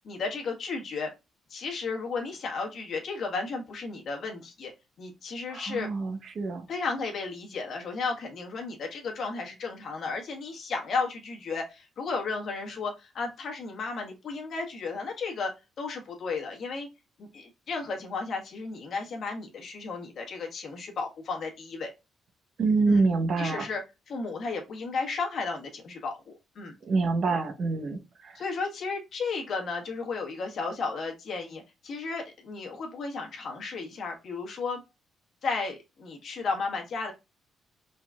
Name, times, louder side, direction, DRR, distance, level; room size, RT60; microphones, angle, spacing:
voice 1, 0.0-1.1 1.5-4.7 5.0-5.9 6.7-15.5 15.8-16.9 17.2-21.9 22.9-23.0 23.4-23.8 24.1-26.7 27.3-27.4 28.3-34.8 35.4-37.1, left 4 dB, 60° left, 1 dB, 1.4 m, -34 dB
voice 2, 5.5-6.6 22.6-23.7 26.8-28.4, right 3 dB, 55° right, 5 dB, 0.9 m, -26 dB
5.0 x 3.8 x 2.4 m, 0.26 s
cardioid pair, 90°, 0 cm